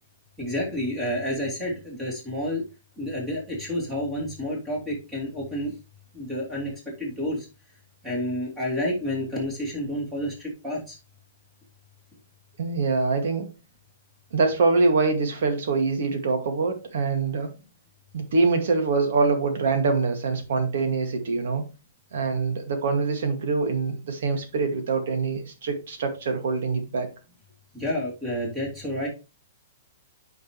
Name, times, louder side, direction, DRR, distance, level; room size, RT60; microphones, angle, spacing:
voice 1, 0.4-2.6 3.0-5.7 6.1-6.7 7.0-7.5 8.0-11.0 27.7-29.1, left 1 dB, 10° right, 2.8 m, -29 dB
voice 2, 12.6-13.5 14.3-17.5 18.1-21.6 22.1-27.1, right 4 dB, 60° right, 2.1 m, -24 dB
8.8 x 5.2 x 3.1 m
hypercardioid pair, 170°, 0 cm